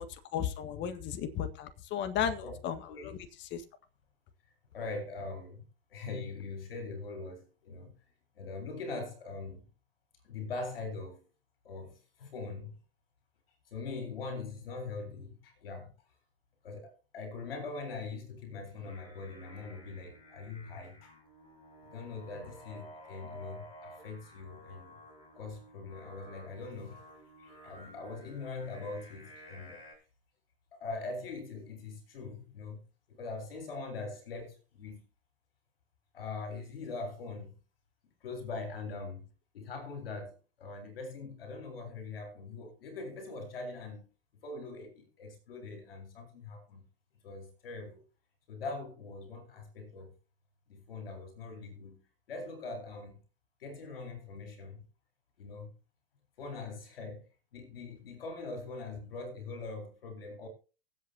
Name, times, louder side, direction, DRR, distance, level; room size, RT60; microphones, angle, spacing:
voice 1, 0.0-3.6, left 9 dB, 40° left, 1.7 m, -35 dB
voice 2, 2.9-3.2 4.4-5.6 5.9-7.9 8.3-9.7 10.2-11.3 11.6-12.8 13.7-15.9 16.6-21.1 21.8-25.0 25.3-27.0 27.4-29.8 30.7-35.1 36.1-37.5 38.2-39.3 39.5-44.1 44.4-46.8 47.2-48.0 48.5-50.1 50.7-52.0 52.3-53.2 53.6-54.8 55.4-55.7 56.4-60.5, left 3 dB, 75° left, 4.0 m, -42 dB
Singing, 18.6-29.9, equal, 15° left, 7.8 m, -53 dB
24.0 x 8.2 x 2.9 m
figure-of-eight pair, 90°, 30 cm